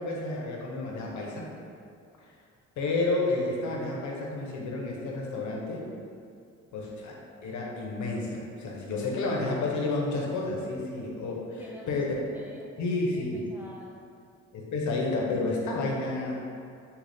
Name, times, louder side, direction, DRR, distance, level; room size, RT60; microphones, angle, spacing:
voice 1, 0.0-1.5 2.2-2.3 2.8-5.8 6.7-11.6 11.9-12.1 12.8-13.5 14.5-16.5, left 2 dB, 70° left, -1 dB, 0.7 m, -30 dB
voice 2, 11.6-14.0, left 1 dB, 5° right, -4 dB, 0.5 m, -47 dB
3.8 x 2.3 x 3.4 m, 2.4 s
cardioid pair, 90°, 30 cm